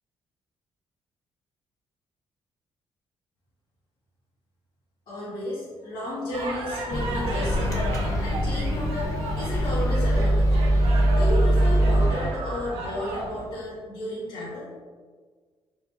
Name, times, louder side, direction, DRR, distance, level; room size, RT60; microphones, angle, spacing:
voice 1, 5.1-7.8 8.2-10.6 11.1-14.7, left 1 dB, 70° left, -8 dB, 1.4 m, -33 dB
sound 1, 6.3-13.5, right 1 dB, 75° right, 0.7 m, -34 dB
Microwave oven, 6.9-12.1, equal, 30° left, 0.6 m, -22 dB
4.8 x 2.4 x 3.9 m, 1.5 s
cardioid pair, 175°, 10 cm